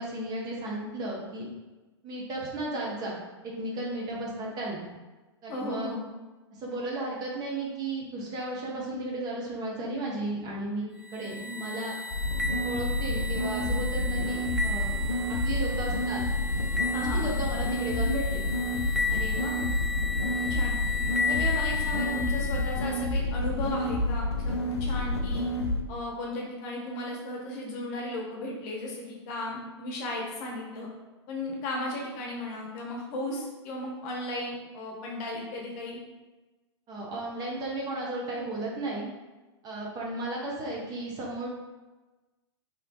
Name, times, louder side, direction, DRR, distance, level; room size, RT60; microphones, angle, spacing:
voice 1, 0.0-1.5 2.0-3.2 3.4-4.9 5.4-5.9 6.6-10.9 11.1-11.9 12.6-14.9 15.4-16.2 17.1-18.4 36.9-39.1 39.6-41.5, right 2 dB, 30° right, -3 dB, 0.8 m, -34 dB
voice 2, 5.5-6.1 16.9-17.3 19.1-19.6 20.5-20.8 21.3-25.5 25.9-30.9 31.3-36.0, left 1 dB, 40° left, -1 dB, 0.8 m, -35 dB
sound 1, 11.0-23.1, left 3 dB, ahead, 0.4 m, -34 dB
sound 2, 12.1-25.8, left 2 dB, 75° left, 0.4 m, -29 dB
3.1 x 2.8 x 2.5 m, 1.2 s
figure-of-eight pair, 95°, 14 cm